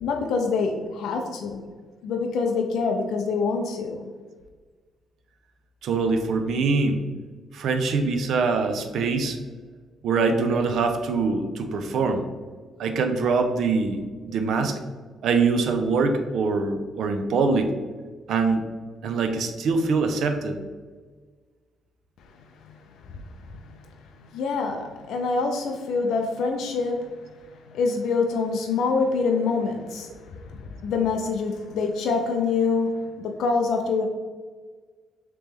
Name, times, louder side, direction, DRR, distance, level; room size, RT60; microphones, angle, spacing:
voice 1, 0.0-1.6 2.0-4.0 22.7-22.8 23.1-23.2 24.3-27.1 27.7-30.4 30.8-34.1, left 4 dB, 80° left, 3 dB, 0.3 m, -25 dB
voice 2, 5.8-7.0 7.5-9.4 10.0-12.2 12.8-14.8 15.2-17.7 18.3-18.6 19.0-20.6, right 4 dB, 70° right, 6 dB, 0.4 m, -23 dB
3.2 x 2.9 x 3.4 m, 1.5 s
cardioid pair, 90°, 0 cm